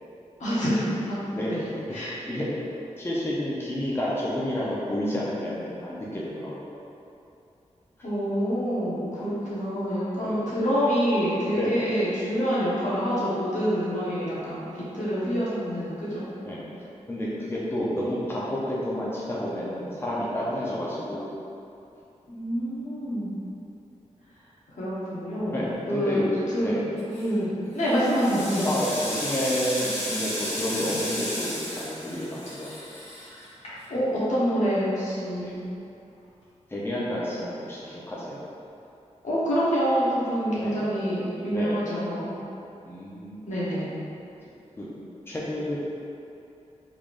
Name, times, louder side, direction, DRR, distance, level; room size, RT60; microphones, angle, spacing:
voice 1, 0.4-1.2 1.5-1.6 1.9-2.1 8.0-16.3 22.3-23.4 24.8-26.2 26.5-28.7 33.9-35.6 39.2-42.3 43.4-43.9, equal, 75° left, -9 dB, 1.1 m, -26 dB
voice 2, 1.9-2.5 3.0-6.8 10.2-10.4 11.6-11.8 14.4-14.5 15.1-15.3 16.5-16.6 17.1-21.2 25.5-26.3 26.6-26.8 28.6-32.7 35.4-35.5 36.7-38.4 40.6-40.8 41.5-41.8 42.8-43.4 44.8-44.9 45.3-45.8, equal, 20° left, -7 dB, 0.7 m, -30 dB
sound 1, 27.0-27.4 27.8-34.1, equal, 55° left, 1.3 m, -33 dB
3.6 x 3.4 x 2.5 m, 2.7 s
cardioid pair, 65°, 13 cm